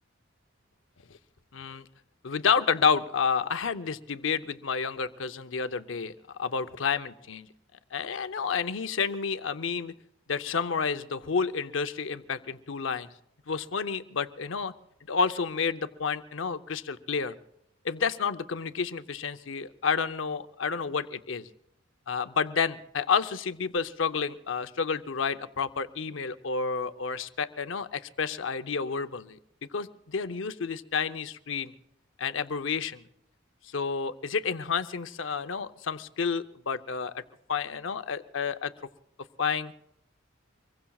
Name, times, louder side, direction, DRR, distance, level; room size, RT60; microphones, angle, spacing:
voice 1, 1.5-1.8 2.2-6.1 6.4-7.5 7.9-9.9 10.3-13.1 13.5-14.7 15.1-17.4 17.8-21.5 22.1-29.4 29.7-31.7 32.2-33.0 33.7-37.2 37.5-38.7 39.4-39.7, left 5 dB, 70° left, 10 dB, 0.7 m, -30 dB
25.0 x 21.5 x 2.4 m, 0.77 s
head